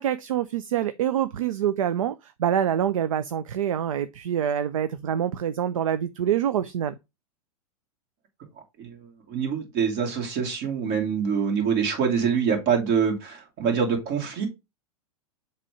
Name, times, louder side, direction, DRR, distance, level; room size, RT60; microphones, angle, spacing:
voice 1, 0.0-7.0, right 9 dB, 60° right, 0.5 m, -26 dB
voice 2, 8.8-14.5, right 6 dB, 40° right, 2.5 m, -25 dB
7.4 x 3.0 x 4.9 m
figure-of-eight pair, 95°, 19 cm